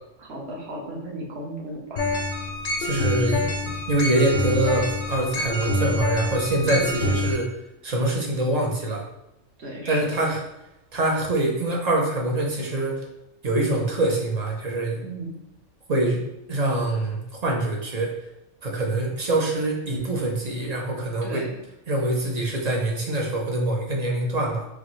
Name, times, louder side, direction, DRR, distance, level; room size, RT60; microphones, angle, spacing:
voice 1, 0.2-2.1 6.6-7.2 9.6-10.0 15.0-15.3 21.2-21.6, right 1 dB, 55° right, -2 dB, 1.1 m, -35 dB
sound 1, 2.0-7.3, left 1 dB, 80° left, 1.1 m, -26 dB
voice 2, 2.8-3.4 3.9-7.5 7.8-9.0 9.9-10.4 10.9-13.0 13.4-15.0 15.9-16.2 16.5-18.1 18.6-21.4 21.9-24.7, right 1 dB, 40° right, -1 dB, 0.6 m, -24 dB
3.9 x 2.7 x 3.0 m, 0.89 s
omnidirectional pair, 1.3 m